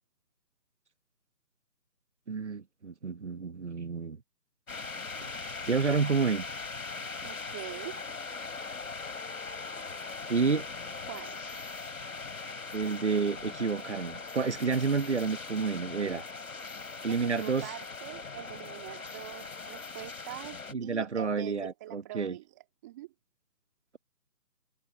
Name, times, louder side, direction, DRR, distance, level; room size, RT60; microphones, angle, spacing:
voice 1, 2.3-4.2 5.2-6.5 10.3-10.7 12.7-16.2 17.0-17.7 20.7-22.4, right 5 dB, 45° right, 1.2 m, -30 dB
sound 1, 4.7-20.7, left 4 dB, 55° left, 4.6 m, -40 dB
voice 2, 7.2-8.0 11.0-11.4 17.1-23.1, right 16 dB, 10° right, 3.1 m, -44 dB
figure-of-eight pair, 170°, 49 cm